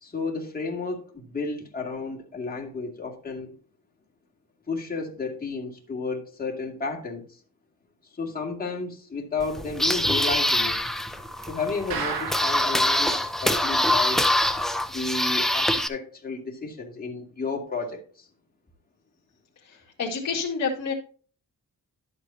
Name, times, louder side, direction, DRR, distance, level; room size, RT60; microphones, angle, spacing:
voice 1, 0.0-3.5 4.7-7.2 8.1-10.8 11.5-14.2 14.9-18.3, left 4 dB, 25° left, 0 dB, 2.4 m, -32 dB
sound 1, 9.4-15.9, left 1 dB, ahead, 0.7 m, -24 dB
sound 2, 11.9-12.8 13.1-13.2 13.5-13.6 14.0-14.1, right 5 dB, 85° right, 2.0 m, -32 dB
voice 2, 19.7-20.9, left 5 dB, 50° left, -3 dB, 2.0 m, -29 dB
11.0 x 8.2 x 2.8 m, 0.41 s
cardioid pair, 125°, 35 cm